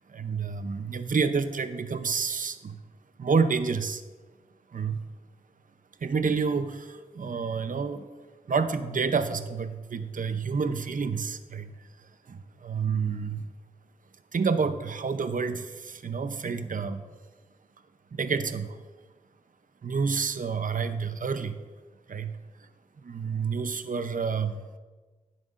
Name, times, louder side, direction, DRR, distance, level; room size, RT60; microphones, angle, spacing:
voice 1, 0.1-2.8 3.2-4.0 4.7-5.0 6.0-8.1 8.5-11.7 12.3-13.5 14.3-17.0 18.1-18.8 19.8-21.6 22.1-22.3 23.0-24.6, right 5 dB, 60° right, 10 dB, 0.6 m, -29 dB
15.5 x 7.6 x 2.5 m, 1.3 s
wide cardioid pair, 90°, 15 cm